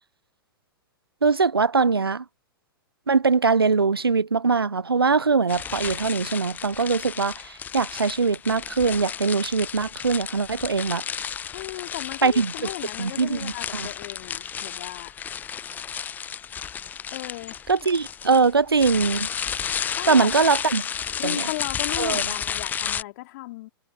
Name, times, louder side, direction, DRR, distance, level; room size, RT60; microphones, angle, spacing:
voice 1, 1.2-2.2 3.1-11.0 12.2-12.7 13.0-13.9 17.7-19.3 20.1-20.9 21.2-21.5 22.0-22.2, right 4 dB, 85° right, 0.7 m, -22 dB
sound 1, 5.5-23.0, left 8 dB, 15° left, 0.4 m, -32 dB
voice 2, 11.5-15.1 17.1-18.0 20.0-20.3 21.2-23.7, left 19 dB, 50° left, 2.6 m, -36 dB
figure-of-eight pair, 105°, 12 cm